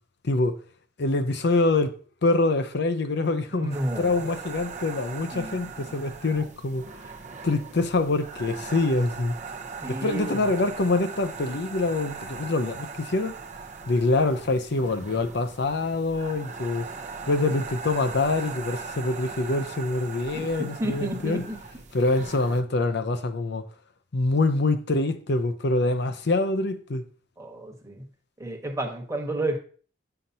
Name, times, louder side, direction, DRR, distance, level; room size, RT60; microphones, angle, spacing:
voice 1, 0.2-0.6 1.0-1.9 2.2-6.8 7.4-9.4 9.9-13.3 13.9-16.9 17.2-21.4 21.9-23.6 24.1-27.0, left 2 dB, 60° left, 0.6 m, -25 dB
voice 2, 3.5-4.3 5.3-6.0 9.8-10.5 20.3-21.6 27.4-28.0 28.4-29.6, right 1 dB, 15° right, 1.2 m, -32 dB
sound 1, 3.7-22.6, right 4 dB, 40° right, 0.6 m, -40 dB
8.9 x 5.7 x 2.7 m
head